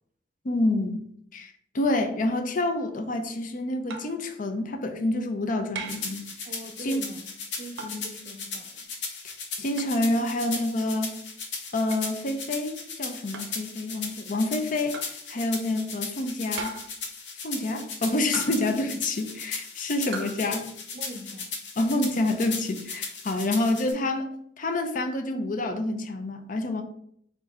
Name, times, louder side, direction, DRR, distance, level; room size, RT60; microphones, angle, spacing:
voice 1, 0.4-1.0 1.3-6.3 6.8-7.0 9.2-11.1 11.7-15.0 15.3-16.7 17.4-20.7 21.8-24.3 24.6-26.8, left 2 dB, 45° left, 0.5 m, -28 dB
sound 1, 3.9-4.2 5.7-6.1 7.8-8.1 9.8-10.0 11.9-12.1 13.3-13.6 14.9-15.2 16.6-17.0 18.3-18.8 20.1-20.4, right 3 dB, 80° right, 0.7 m, -38 dB
sound 2, 5.9-23.9, left 5 dB, 80° left, 0.9 m, -37 dB
voice 2, 6.4-8.9 20.9-21.6, equal, 45° right, 0.5 m, -42 dB
4.2 x 2.6 x 4.3 m
head